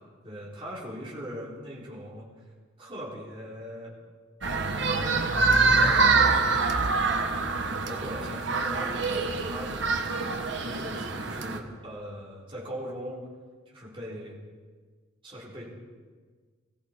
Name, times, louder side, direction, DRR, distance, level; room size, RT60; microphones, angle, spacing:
voice 1, 0.2-2.3 2.8-4.0 4.9-7.1 7.6-13.2 13.7-14.4 15.2-15.8, equal, 25° right, -6 dB, 3.9 m, -40 dB
sound 1, 4.4-11.6, right 4 dB, 60° right, 1.2 m, -25 dB
19.5 x 15.0 x 4.5 m, 1.5 s
head